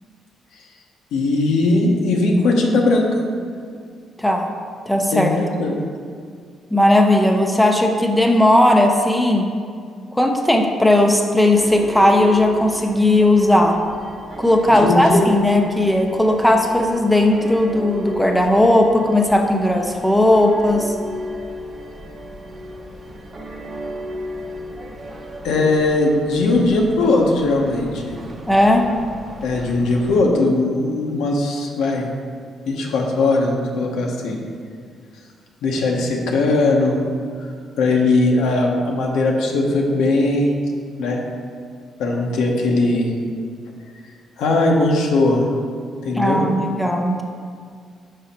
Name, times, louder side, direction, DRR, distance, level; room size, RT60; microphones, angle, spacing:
voice 1, 1.1-3.1 5.1-5.7 14.7-15.2 25.4-28.1 29.4-32.1 32.7-34.4 35.6-37.0 37.4-37.5 37.8-40.6 41.0-41.2 42.0-43.1 44.4-45.4 46.0-46.4, left 2 dB, 85° left, 0 dB, 0.9 m, -19 dB
voice 2, 4.9-5.3 6.7-9.5 10.1-13.8 14.4-20.9 28.5-28.9 46.1-47.2, left 1 dB, 5° left, 2 dB, 0.7 m, -16 dB
sound 1, 11.5-30.2, equal, 35° right, 0.8 m, -35 dB
5.5 x 5.0 x 4.3 m, 2.1 s
cardioid pair, 90°, 0 cm